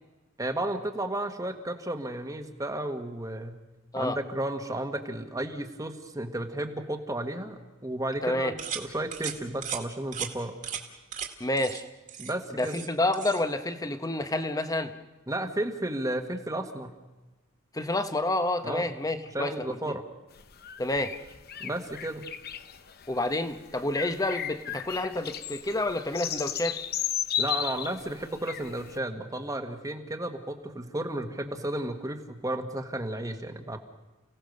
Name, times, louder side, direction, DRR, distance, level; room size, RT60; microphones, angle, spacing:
voice 1, 0.4-3.6 3.9-10.5 12.2-12.8 15.3-16.9 18.6-18.9 19.3-20.0 21.6-22.2 27.4-33.8, right 1 dB, 15° right, 6 dB, 1.5 m, -33 dB
voice 2, 8.2-8.5 11.4-11.8 12.6-14.9 17.7-19.5 19.9-20.0 20.8-21.1 23.1-26.8, left 2 dB, 15° left, 9 dB, 1.1 m, -29 dB
sound 1, 8.6-8.8 9.1-9.3 9.6-9.8 10.1-10.3 10.6-10.8 11.1-11.3 11.6-11.8 12.1-12.9 13.1-13.4, right 8 dB, 40° right, 2.1 m, -36 dB
sound 2, 20.4-29.0, left 10 dB, 50° left, 0.8 m, -35 dB
30.0 x 17.0 x 6.6 m, 1.2 s
head